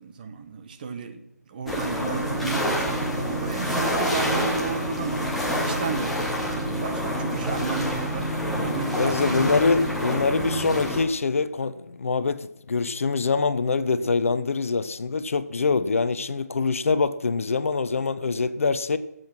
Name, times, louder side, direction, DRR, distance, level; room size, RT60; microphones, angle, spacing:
voice 1, 0.0-9.5 14.0-14.1, right 5 dB, 30° right, 1.4 m, -33 dB
sound 1, 1.7-11.0, equal, ahead, 1.5 m, -27 dB
voice 2, 8.9-19.0, left 4 dB, 55° left, 0.8 m, -24 dB
17.5 x 7.9 x 5.9 m
figure-of-eight pair, 155°, 9 cm